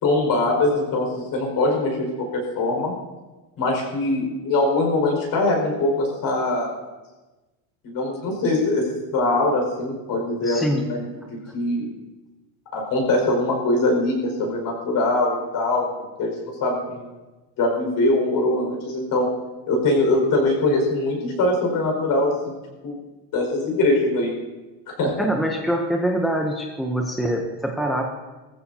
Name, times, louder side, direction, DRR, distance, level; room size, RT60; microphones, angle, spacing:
voice 1, 0.0-2.9 3.6-6.8 7.8-11.0 11.3-11.9 12.7-17.1 17.6-19.3 19.7-22.6 22.8-23.0 23.3-24.3 24.9-25.1, left 2 dB, 40° left, 1 dB, 5.1 m, -22 dB
voice 2, 10.4-10.9 25.2-28.1, equal, ahead, 1 dB, 0.6 m, -24 dB
20.5 x 15.0 x 2.8 m, 1.2 s
cardioid pair, 160°, 49 cm